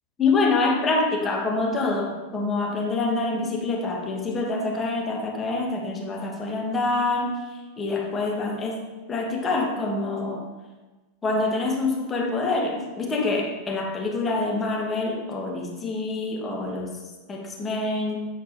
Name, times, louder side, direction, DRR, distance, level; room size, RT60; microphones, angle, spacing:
voice 1, 0.2-7.3 7.8-10.5 11.2-16.9 17.3-18.2, left 3 dB, 20° left, 0 dB, 1.3 m, -26 dB
8.6 x 4.5 x 4.0 m, 1.2 s
figure-of-eight pair, 90°, 0 cm